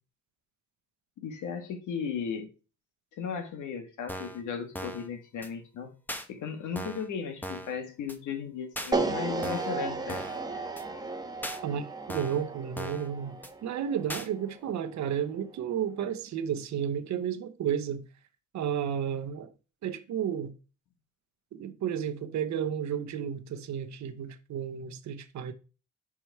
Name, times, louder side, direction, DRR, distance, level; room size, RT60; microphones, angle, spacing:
voice 1, 1.2-2.5 3.1-5.9 6.3-10.2 10.5-10.7, left 6 dB, 80° left, 1.6 m, -36 dB
sound 1, 4.1-4.4 4.7-5.1 5.4-5.5 6.1-6.2 6.8-7.1 7.4-7.7 8.1-8.2 8.8-8.9 9.4-9.8 10.1-10.4 10.8-10.9 11.4-11.6 12.1-12.4 12.8-13.1 13.4-13.5 14.1-14.3, equal, 5° left, 1.0 m, -38 dB
sound 2, 8.9-15.1, right 3 dB, 15° right, 1.1 m, -35 dB
voice 2, 11.6-13.4 13.6-18.0 18.5-19.5 19.8-20.5 21.5-25.5, right 8 dB, 65° right, 0.9 m, -32 dB
5.9 x 4.8 x 4.4 m
cardioid pair, 90°, 30 cm